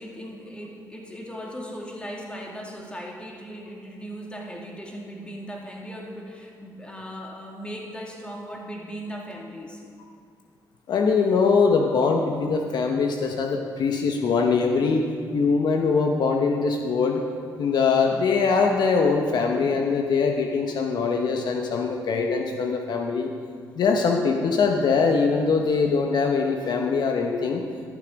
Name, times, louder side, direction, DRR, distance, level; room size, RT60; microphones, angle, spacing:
voice 1, 0.0-9.8, equal, 15° left, -1 dB, 2.3 m, -38 dB
voice 2, 10.9-15.1 15.3-17.2 17.6-23.3 23.8-27.6, left 5 dB, 65° left, 2 dB, 0.9 m, -22 dB
12.5 x 7.1 x 5.2 m, 2.1 s
cardioid pair, 70°, 8 cm